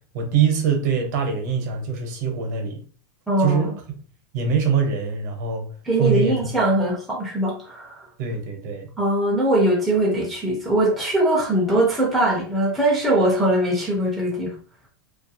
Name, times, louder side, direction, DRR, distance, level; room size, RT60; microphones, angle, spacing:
voice 1, 0.1-2.8 3.4-3.7 4.3-5.6 6.0-6.4 6.8-6.9 8.2-8.9, right 6 dB, 55° right, 4 dB, 0.7 m, -23 dB
voice 2, 3.3-3.7 5.9-8.0 9.0-14.6, right 1 dB, ahead, -5 dB, 0.4 m, -21 dB
2.3 x 2.2 x 2.6 m, 0.43 s
supercardioid pair, 170°, 11 cm